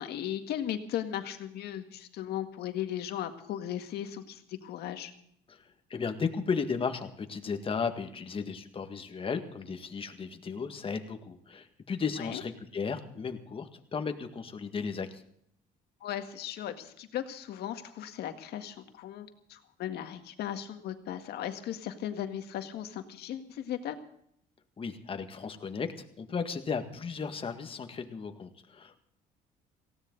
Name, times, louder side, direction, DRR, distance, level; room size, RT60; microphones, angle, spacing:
voice 1, 0.0-5.1 12.2-12.4 16.0-24.0, left 10 dB, 75° left, 7 dB, 1.9 m, -37 dB
voice 2, 5.9-15.2 24.8-25.9 26.2-29.0, left 5 dB, 30° left, 6 dB, 1.8 m, -35 dB
18.5 x 16.5 x 4.0 m, 0.71 s
cardioid pair, 110°, 17 cm